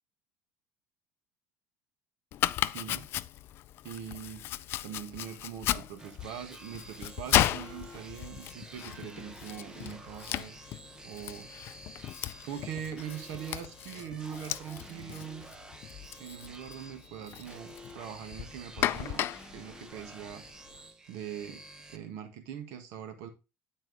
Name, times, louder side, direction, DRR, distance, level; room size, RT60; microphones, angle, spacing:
Domestic sounds home sounds, 2.3-20.8, left 13 dB, 45° left, 0.3 m, -35 dB
voice 1, 2.7-3.1 3.8-4.5 4.8-10.6 11.0-11.5 12.4-15.5 16.2-19.2 19.5-20.4 21.1-21.6 21.9-23.3, right 9 dB, 75° right, 1.4 m, -42 dB
sound 1, 6.0-22.0, right 1 dB, 15° right, 0.7 m, -50 dB
9.4 x 4.5 x 3.9 m
cardioid pair, 155°, 5 cm